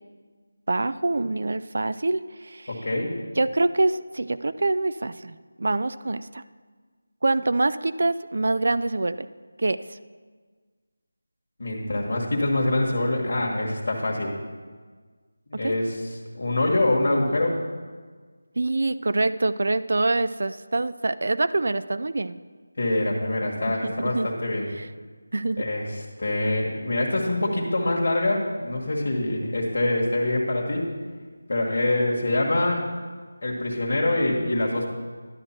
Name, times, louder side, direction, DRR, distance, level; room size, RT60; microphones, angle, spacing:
voice 1, 0.7-2.7 3.4-6.4 7.2-9.3 9.6-10.0 15.5-15.7 18.6-22.4 23.8-24.3 25.3-25.6, right 2 dB, 60° right, 14 dB, 0.3 m, -25 dB
voice 2, 2.7-3.1 11.6-14.3 15.5-17.6 22.8-24.7 25.6-30.9 31.5-32.8 33.4-34.9, left 1 dB, 50° left, -3 dB, 1.4 m, -25 dB
11.0 x 6.3 x 4.4 m, 1.5 s
figure-of-eight pair, 170°, 0 cm